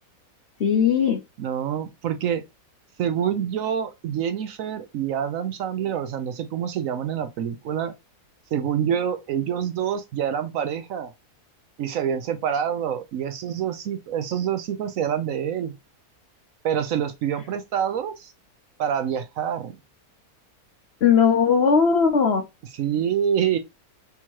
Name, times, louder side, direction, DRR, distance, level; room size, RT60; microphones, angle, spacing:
voice 1, 0.6-1.2 21.0-22.4, left 6 dB, 55° left, 0.8 m, -18 dB
voice 2, 1.4-2.4 3.0-7.9 8.5-11.1 11.8-15.7 16.6-18.3 18.8-19.7 22.8-23.6, right 9 dB, 70° right, 0.9 m, -26 dB
3.6 x 2.8 x 4.5 m
omnidirectional pair, 1.6 m